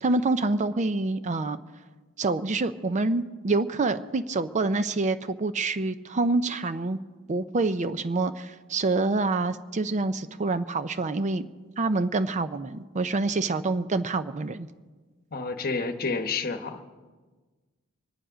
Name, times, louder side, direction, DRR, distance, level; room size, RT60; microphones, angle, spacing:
voice 1, 0.0-1.6 2.2-7.0 7.3-11.5 11.8-14.7, right 3 dB, 35° right, 12 dB, 0.5 m, -26 dB
voice 2, 15.3-16.8, left 4 dB, 45° left, 7 dB, 1.1 m, -29 dB
24.0 x 10.5 x 5.0 m, 1.3 s
head